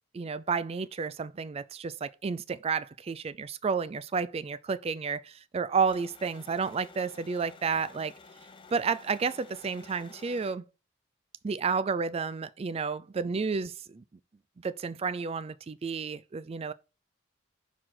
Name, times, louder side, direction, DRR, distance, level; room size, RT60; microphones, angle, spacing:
voice 1, 0.1-8.1 8.7-10.6 11.4-14.0 14.6-16.7, right 5 dB, 30° right, 0.3 m, -31 dB
sound 1, 5.7-10.5, left 4 dB, 25° left, 0.8 m, -53 dB
5.9 x 4.9 x 3.8 m
head